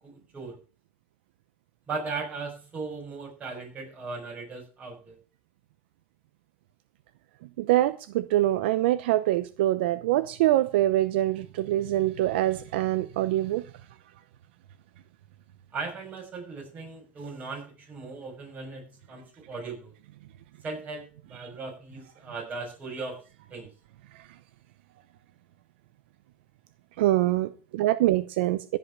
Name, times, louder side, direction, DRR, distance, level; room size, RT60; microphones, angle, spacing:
voice 1, 0.0-0.6 1.9-5.2 15.7-19.9 20.6-23.2 23.5-23.7, right 4 dB, 25° right, 1 dB, 6.8 m, -38 dB
voice 2, 7.6-13.6 27.0-28.8, right 14 dB, 75° right, 13 dB, 0.8 m, -24 dB
15.5 x 5.7 x 7.3 m, 0.37 s
supercardioid pair, 125°, 6 cm